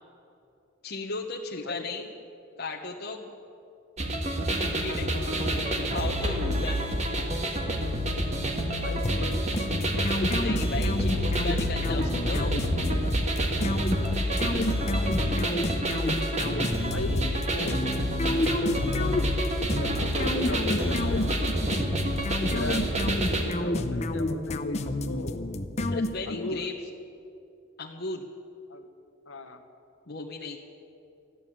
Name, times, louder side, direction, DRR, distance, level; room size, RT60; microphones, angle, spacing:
voice 1, 0.8-2.1 2.6-3.3 4.5-5.2 5.8-6.9 10.4-12.6 25.9-26.7 27.8-28.3 30.1-30.6, left 3 dB, 55° left, -2 dB, 1.1 m, -36 dB
voice 2, 1.6-2.1 5.2-5.7 8.8-9.4 14.3-14.4 14.7-15.3 16.8-17.8 18.8-19.4 19.8-21.4 22.3-22.8 23.2-25.5 26.3-26.7 28.7-28.9 29.3-29.6, left 2 dB, 80° left, 7 dB, 1.3 m, -39 dB
sound 1, 4.0-23.4, equal, 35° right, 1.7 m, -28 dB
sound 2, 9.0-26.5, left 1 dB, 35° left, 0.7 m, -30 dB
14.0 x 11.0 x 8.8 m, 2.6 s
head